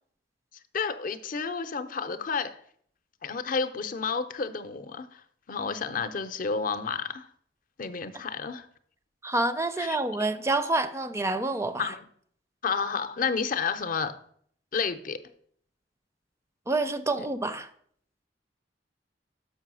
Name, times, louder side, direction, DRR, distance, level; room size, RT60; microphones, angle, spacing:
voice 1, 0.7-2.5 3.2-5.2 5.5-7.3 7.8-8.7 9.8-10.0 11.8-12.0 12.6-14.2 14.7-15.2 17.2-17.3, left 5 dB, 50° left, 0.6 m, -30 dB
voice 2, 9.2-11.9 16.7-17.7, right 2 dB, 15° right, 0.4 m, -28 dB
6.7 x 5.5 x 6.1 m
head